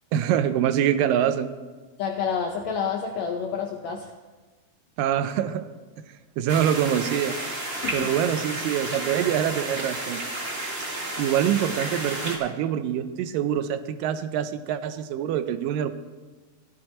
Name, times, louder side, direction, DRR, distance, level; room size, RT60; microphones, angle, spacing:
voice 1, 0.1-1.5 5.0-5.7 6.4-7.4 7.9-10.2 11.2-15.9, right 10 dB, 80° right, 11 dB, 2.2 m, -25 dB
voice 2, 2.0-4.1 7.8-8.1, left 6 dB, 80° left, 3 dB, 1.6 m, -29 dB
sound 1, 6.5-12.4, right 1 dB, 35° right, 1.0 m, -32 dB
15.0 x 10.5 x 4.3 m, 1.3 s
omnidirectional pair, 4.1 m